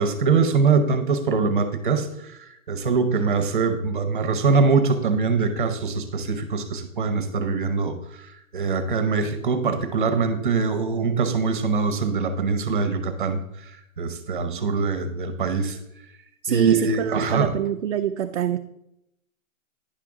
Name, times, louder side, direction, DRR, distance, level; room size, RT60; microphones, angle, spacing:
voice 1, 0.0-2.3 2.7-8.0 8.5-13.4 14.0-15.8 16.5-17.5, right 4 dB, 35° right, 9 dB, 0.8 m, -23 dB
voice 2, 16.4-18.6, right 9 dB, 55° right, 7 dB, 0.5 m, -25 dB
10.0 x 6.0 x 3.6 m, 0.82 s
hypercardioid pair, 165°, 42 cm